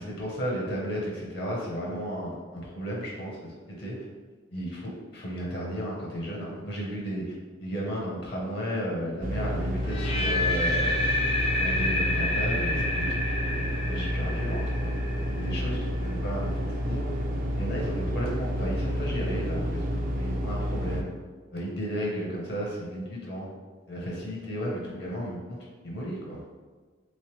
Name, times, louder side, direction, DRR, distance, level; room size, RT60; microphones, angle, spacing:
voice 1, 0.0-4.0 4.5-7.3 7.6-11.0 11.6-14.9 15.4-17.1 17.5-21.1 21.5-23.5 23.9-25.6 25.8-26.4, equal, 50° left, -3 dB, 0.8 m, -34 dB
sound 1, 9.2-21.0, equal, 45° right, 0.4 m, -30 dB
sound 2, 9.9-15.9, left 1 dB, 30° left, 0.3 m, -29 dB
3.3 x 3.1 x 3.0 m, 1.4 s
head